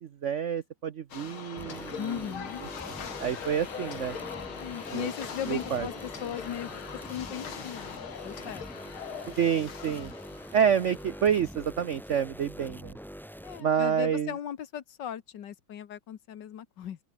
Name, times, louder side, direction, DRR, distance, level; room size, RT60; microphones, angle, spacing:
voice 1, 0.0-2.2 2.9-4.2 4.9-5.1 5.5-5.9 9.3-10.1 10.5-13.0 13.6-14.3, right 8 dB, 75° right, 0.6 m, -28 dB
sound 1, 1.1-11.5, left 7 dB, 80° left, 2.9 m, -41 dB
sound 2, 1.6-13.6, equal, ahead, 7.5 m, -44 dB
voice 2, 2.0-2.6 4.5-6.7 7.1-8.6 13.4-17.0, left 9 dB, 60° left, 1.6 m, -38 dB
open air
omnidirectional pair, 2.3 m